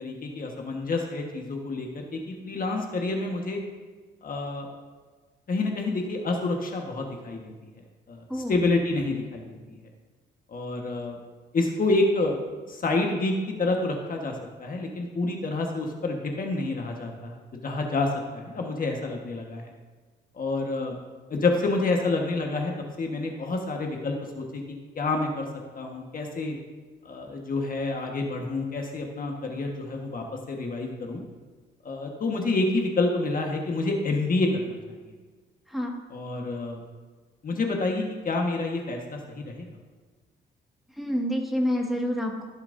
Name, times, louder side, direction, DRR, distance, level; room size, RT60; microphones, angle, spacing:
voice 1, 0.0-3.6 4.2-4.7 5.5-7.5 8.1-9.6 10.5-11.2 11.5-12.4 12.7-19.7 20.3-21.0 21.3-22.7 23.0-24.6 24.9-25.5 25.7-26.6 27.0-31.2 31.8-34.8 36.1-36.8 37.4-39.6, left 2 dB, 45° left, 1 dB, 1.4 m, -28 dB
voice 2, 41.0-42.4, equal, ahead, -1 dB, 1.8 m, -28 dB
15.5 x 7.2 x 2.7 m, 1.4 s
cardioid pair, 90°, 20 cm